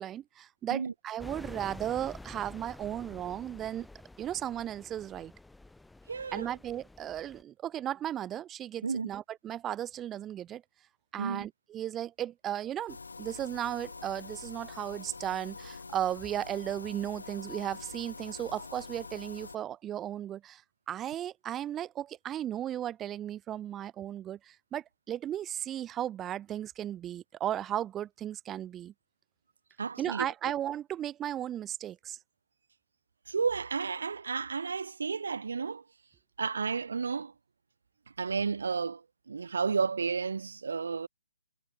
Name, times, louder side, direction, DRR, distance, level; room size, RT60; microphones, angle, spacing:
voice 1, 0.0-3.9 4.2-5.3 6.3-10.6 11.1-20.6 20.9-28.9 30.0-32.2, right 11 dB, 15° right, 2.0 m, -35 dB
sound 1, 1.2-7.4, left 2 dB, 5° left, 2.1 m, -49 dB
voice 2, 6.1-6.5 8.8-9.1 11.2-11.4 29.8-30.3 33.3-35.8 36.4-37.3 38.2-41.1, right 5 dB, 70° right, 1.6 m, -32 dB
sound 2, 12.9-19.6, left 4 dB, 85° left, 3.4 m, -45 dB
hypercardioid pair, 155°, 0 cm